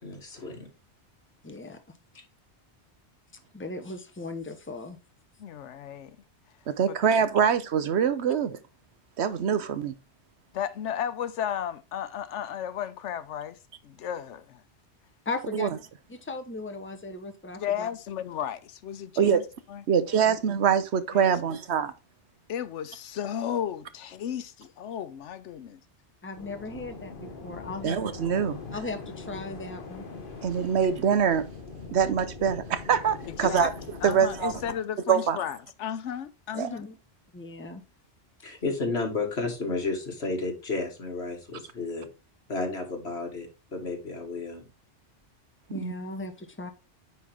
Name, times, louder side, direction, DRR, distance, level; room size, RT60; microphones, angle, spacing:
voice 1, 0.0-0.7 1.6-1.7 38.4-42.1 42.5-44.7, left 3 dB, 65° left, 2.3 m, -32 dB
voice 2, 1.4-1.8 3.5-5.0 15.2-15.7 16.1-17.9 20.3-20.4 26.2-28.0 28.7-30.1 33.6-33.7 36.5-37.0 37.3-37.8 45.7-46.7, left 3 dB, 10° left, 0.9 m, -37 dB
voice 3, 5.4-6.2 6.9-7.0 10.5-13.6 13.8-14.6 17.6-19.8 21.1-21.3 22.5-25.8 33.3-33.7 34.0-36.9, left 9 dB, 85° left, 1.0 m, -34 dB
voice 4, 6.7-8.6 9.2-9.9 15.5-15.7 19.2-19.4 19.9-21.9 27.8-28.6 30.4-31.4 31.9-33.7 34.0-34.5 35.1-35.4 36.6-36.7 45.7-45.9, right 7 dB, 70° right, 1.0 m, -24 dB
sound 1, 26.4-34.8, left 4 dB, 50° left, 1.3 m, -42 dB
9.2 x 4.4 x 3.6 m
omnidirectional pair, 1.2 m